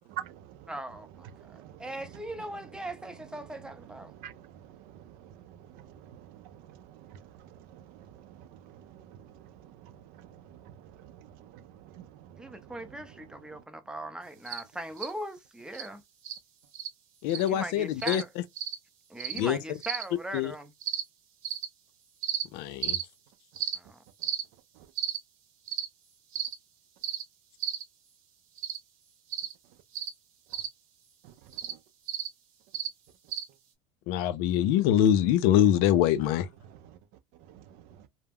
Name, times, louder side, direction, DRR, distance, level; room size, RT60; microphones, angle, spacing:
voice 1, 0.1-0.7 1.4-1.8 4.1-11.6 11.9-12.7 31.7-31.8 36.7-37.0 37.5-37.6, right 11 dB, 60° right, 0.5 m, -48 dB
voice 2, 0.7-4.1 12.4-16.0 17.3-18.3 19.1-20.7 23.7-24.0, right 1 dB, 5° right, 0.5 m, -40 dB
sound 1, 14.5-14.6 15.0-15.1 15.7-15.9 16.2-16.4 16.7-16.9 17.3-17.5 18.0-18.2 18.6-18.7 19.2-19.4 19.8-20.0 20.8-21.0 21.4-21.6 22.2-22.4 22.8-23.0 23.6-23.8 24.2-24.4 25.0-25.2 25.7-25.9 26.3-26.5 27.0-27.2 27.6-27.8 28.6-28.8 29.3-29.5 29.9-30.1 30.5-30.7 31.5-31.7 32.1-32.3 32.7-32.9 33.3-33.4, right 9 dB, 85° right, 0.8 m, -33 dB
voice 3, 17.2-18.2 19.4-19.6 20.3-20.5 22.5-23.0 34.1-36.5, left 10 dB, 65° left, 0.4 m, -24 dB
2.2 x 2.1 x 3.4 m
supercardioid pair, 105°, 17 cm